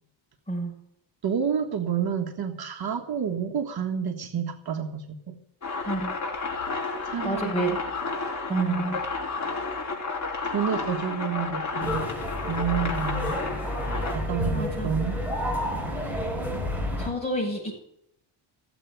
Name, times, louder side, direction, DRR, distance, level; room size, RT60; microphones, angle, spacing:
voice 1, 1.2-5.4 7.0-7.8 8.5-9.0 10.4-12.1 12.5-13.4 14.1-15.2, right 7 dB, 50° right, 4 dB, 1.6 m, -29 dB
sound 1, 5.6-14.2, left 4 dB, 35° left, 4.4 m, -31 dB
voice 2, 7.2-7.8 8.5-9.0 14.5-14.9 17.0-17.7, right 1 dB, 15° left, -1 dB, 7.5 m, -29 dB
sound 2, 11.8-17.1, equal, 5° right, 4.2 m, -30 dB
16.0 x 8.2 x 9.1 m, 0.73 s
cardioid pair, 130°, 47 cm